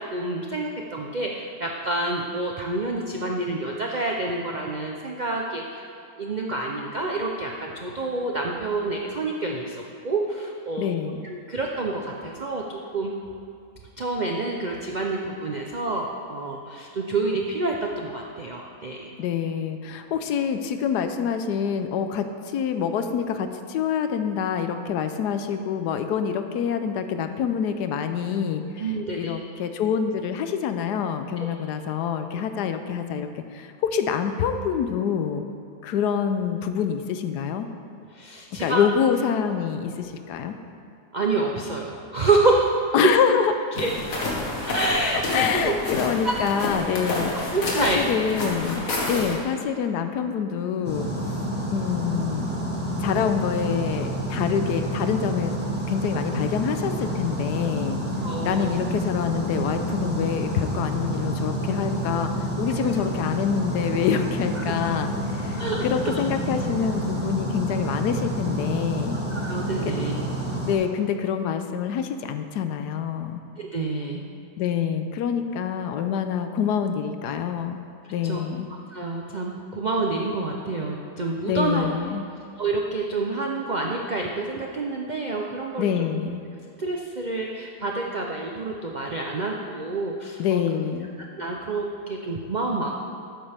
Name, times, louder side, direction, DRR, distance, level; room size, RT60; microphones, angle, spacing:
voice 1, 0.1-5.9 6.2-11.0 11.2-13.1 14.0-19.2 28.8-29.3 31.4-31.5 38.1-38.8 41.1-42.8 43.7-43.9 44.6-45.7 46.2-46.5 47.5-48.0 49.1-49.3 58.2-58.7 62.7-62.9 64.6-64.7 65.5-66.2 69.3-70.1 73.6-74.2 78.0-78.4 78.9-81.9 82.6-86.1 86.8-90.6 91.4-92.9, right 2 dB, 70° right, 0 dB, 0.4 m, -28 dB
voice 2, 10.8-11.2 19.2-28.8 29.1-35.4 35.8-37.7 38.6-40.5 42.9-43.5 45.3-47.4 47.7-51.4 51.7-52.5 53.0-55.5 55.9-58.0 58.4-62.3 62.6-69.2 69.8-69.9 70.6-73.4 74.6-77.8 78.1-78.7 81.5-82.2 85.8-86.4 90.4-91.1, left 7 dB, 80° left, 8 dB, 1.2 m, -26 dB
sound 1, 43.8-49.4, left 2 dB, 60° left, 1.8 m, -29 dB
sound 2, 50.8-70.7, right 1 dB, 5° right, 1.4 m, -29 dB
12.5 x 8.9 x 3.4 m, 2.5 s
omnidirectional pair, 1.8 m